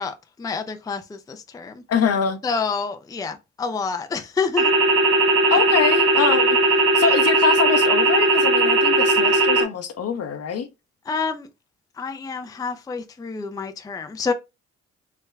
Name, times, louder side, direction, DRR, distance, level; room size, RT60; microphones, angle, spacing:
voice 1, 0.0-1.8 2.4-4.7 11.1-11.5 12.0-14.3, left 5 dB, 10° left, 0.4 m, -28 dB
voice 2, 1.9-2.4 5.5-6.6 6.9-10.7, left 6 dB, 55° left, 0.7 m, -23 dB
sound 1, 4.6-9.6, right 2 dB, 50° right, 1.0 m, -18 dB
3.3 x 2.1 x 3.5 m
cardioid pair, 90°, 30 cm